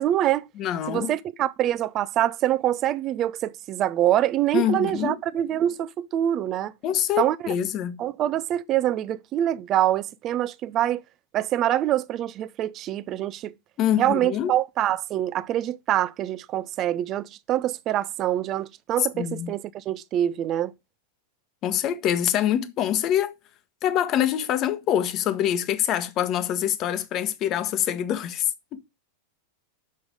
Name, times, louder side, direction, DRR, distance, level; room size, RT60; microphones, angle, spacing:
voice 1, 0.0-0.5 0.9-6.7 7.2-7.4 8.0-11.0 11.3-13.5 14.0-20.7, right 12 dB, 35° right, 0.6 m, -25 dB
voice 2, 0.6-1.1 4.5-5.2 6.8-8.0 13.8-14.5 19.1-19.5 21.6-23.3 23.8-28.8, left 10 dB, 35° left, 1.1 m, -25 dB
6.9 x 6.3 x 4.7 m
figure-of-eight pair, 90°, 0 cm